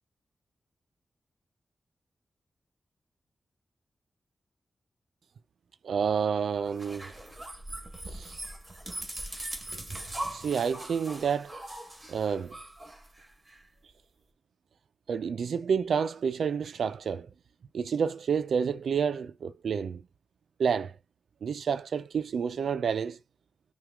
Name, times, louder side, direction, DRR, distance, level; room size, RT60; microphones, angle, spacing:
voice 1, 5.8-7.1 8.1-8.4 10.3-11.5 12.1-12.6 15.1-17.3 17.7-20.0 20.6-20.9 21.4-23.2, right 6 dB, 90° right, 0.3 m, -29 dB
sound 1, 6.6-13.6, right 1 dB, 20° right, 1.3 m, -40 dB
5.8 x 2.3 x 3.4 m
wide cardioid pair, 100°, 0 cm